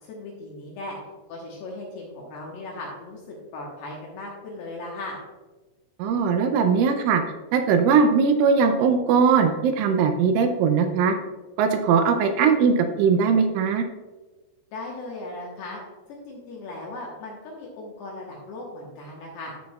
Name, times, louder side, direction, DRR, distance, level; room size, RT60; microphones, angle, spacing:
voice 1, 0.0-1.0 1.3-5.2 14.7-15.8 16.1-19.5, left 2 dB, 70° left, -2 dB, 2.6 m, -37 dB
voice 2, 6.0-7.2 7.5-11.1 11.6-13.8, right 6 dB, 80° right, 6 dB, 3.0 m, -20 dB
13.5 x 6.1 x 2.3 m, 1.2 s
omnidirectional pair, 5.8 m